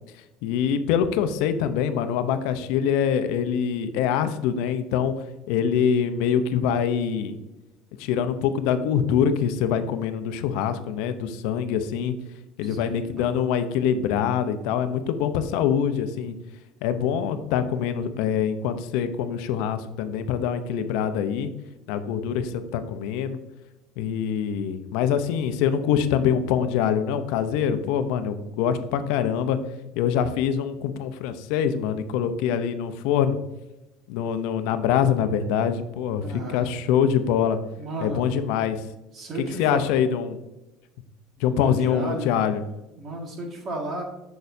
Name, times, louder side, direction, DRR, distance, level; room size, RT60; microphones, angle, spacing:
voice 1, 0.4-5.1 5.5-7.4 8.0-12.2 12.6-16.4 16.8-21.5 21.9-23.4 24.0-29.6 30.0-33.4 34.1-37.6 38.0-38.8 39.6-40.4 41.4-42.6, left 8 dB, 75° left, 10 dB, 0.6 m, -24 dB
voice 2, 12.6-13.3 28.8-29.9 36.2-36.7 37.8-38.3 39.1-39.8 41.4-42.3 43.0-44.0, right 1 dB, 40° right, 1 dB, 1.7 m, -35 dB
6.8 x 6.4 x 2.6 m, 0.99 s
cardioid pair, 135°, 0 cm